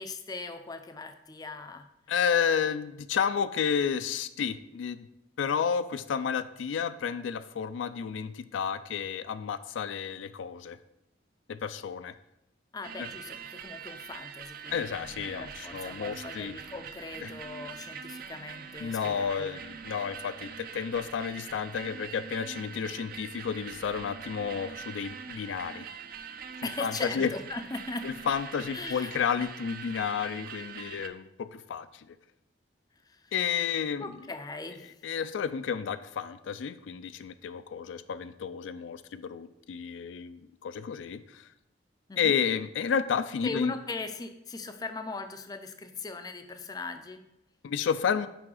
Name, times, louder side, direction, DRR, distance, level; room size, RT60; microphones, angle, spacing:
voice 1, 0.0-1.9 12.7-19.6 26.6-28.1 28.7-29.1 33.0-33.3 34.0-34.9 42.1-42.4 43.4-47.2, left 3 dB, 20° left, 8 dB, 0.4 m, -39 dB
voice 2, 2.1-5.1 5.4-10.8 11.5-12.2 14.7-16.5 17.2-17.3 18.8-25.9 26.6-27.3 28.0-32.2 33.3-34.2 35.0-41.5 42.2-43.7 47.6-48.3, left 7 dB, 85° left, 13 dB, 0.4 m, -31 dB
sound 1, 12.8-31.1, right 7 dB, 50° right, 0.4 m, -43 dB
6.0 x 4.7 x 4.8 m, 0.86 s
head